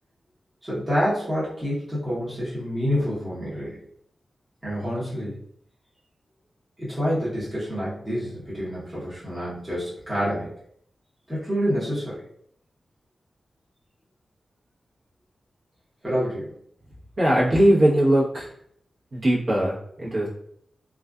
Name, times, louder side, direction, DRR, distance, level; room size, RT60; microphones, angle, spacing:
voice 1, 0.6-3.8 4.6-5.3 6.8-10.5 11.3-12.2 16.0-16.5, equal, 15° right, -10 dB, 1.0 m, -27 dB
voice 2, 17.2-18.5 19.1-20.3, right 1 dB, 50° right, -6 dB, 0.9 m, -20 dB
2.4 x 2.4 x 2.3 m, 0.67 s
wide cardioid pair, 170°, 0 cm